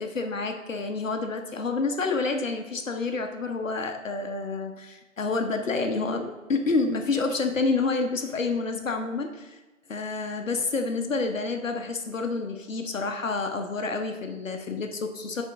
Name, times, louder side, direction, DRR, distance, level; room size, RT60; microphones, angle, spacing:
voice 1, 0.0-9.6 9.9-15.4, left 3 dB, 65° left, 4 dB, 0.8 m, -28 dB
9.4 x 3.6 x 3.5 m, 1.2 s
figure-of-eight pair, 140°, 41 cm